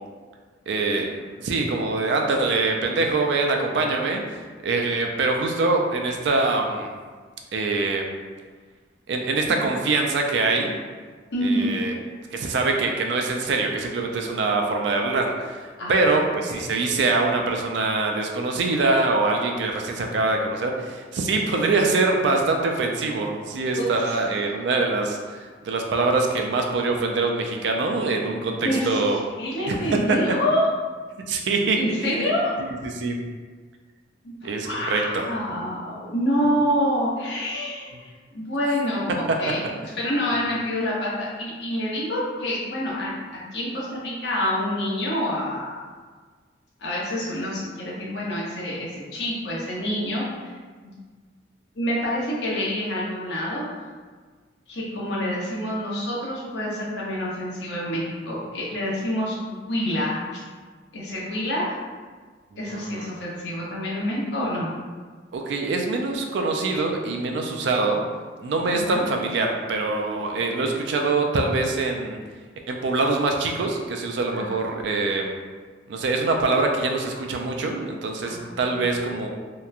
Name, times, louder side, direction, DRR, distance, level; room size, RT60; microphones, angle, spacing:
voice 1, 0.7-1.1 1.4-6.9 7.5-8.1 9.1-10.7 11.4-12.0 12.3-29.2 29.7-30.2 31.3-32.3 32.6-33.3 34.4-35.3 62.7-63.1 65.3-68.0 68.4-72.2 72.7-75.3 75.9-79.3, right 3 dB, 70° right, 2 dB, 0.3 m, -24 dB
voice 2, 11.3-11.7 15.8-16.2 16.5-16.7 23.8-24.2 28.6-30.7 31.8-32.6 34.2-39.6 40.0-45.8 46.8-50.5 50.8-50.9 51.7-53.6 54.7-60.4 60.9-61.7 62.6-64.7 68.7-69.1 74.3-74.6 78.2-78.9, equal, 65° left, -5 dB, 0.7 m, -27 dB
2.8 x 2.1 x 2.4 m, 1.5 s
head